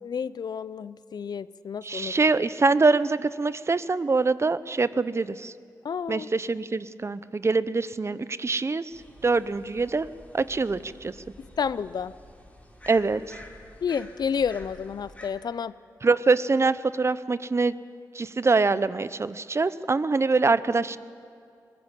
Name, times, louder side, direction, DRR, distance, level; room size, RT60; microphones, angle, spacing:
voice 1, 0.0-2.1 5.8-6.3 11.4-12.1 13.8-15.7, left 6 dB, 70° left, 17 dB, 0.6 m, -30 dB
voice 2, 1.8-5.5 6.1-10.1 10.3-11.1 12.9-13.4 16.0-17.8 18.1-21.0, right 3 dB, 40° right, 15 dB, 0.7 m, -24 dB
sound 1, 8.9-15.3, left 1 dB, 15° left, 4.2 m, -49 dB
21.0 x 17.5 x 7.5 m, 2.4 s
cardioid pair, 65°, 7 cm